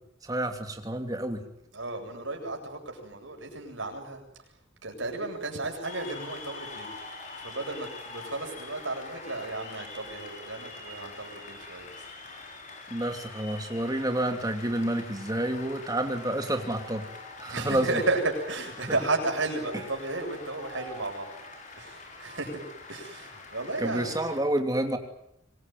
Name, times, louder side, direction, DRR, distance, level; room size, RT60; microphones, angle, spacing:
voice 1, 0.2-1.4 12.9-17.1 17.4-18.0 23.8-25.0, right 1 dB, 20° right, 5 dB, 2.9 m, -29 dB
voice 2, 1.7-4.2 4.8-6.9 7.4-12.1 17.5-21.3 21.8-22.6 22.9-24.1, right 2 dB, 75° right, 2 dB, 7.9 m, -33 dB
Cheering / Applause, 5.8-24.4, left 3 dB, 40° left, 5.7 m, -44 dB
25.5 x 21.5 x 9.5 m, 0.76 s
head